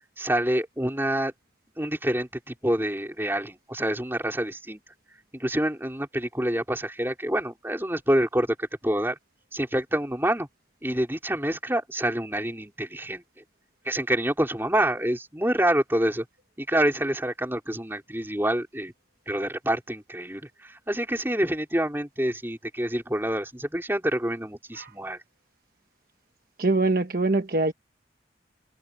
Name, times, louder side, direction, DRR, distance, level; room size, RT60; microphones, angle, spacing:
voice 1, 0.2-1.3 1.8-4.8 5.3-9.2 9.5-10.5 10.8-13.2 13.9-16.2 16.6-18.9 19.3-25.2, right 1 dB, 10° right, 4.0 m, -27 dB
voice 2, 26.6-27.7, right 2 dB, 50° right, 1.1 m, -23 dB
head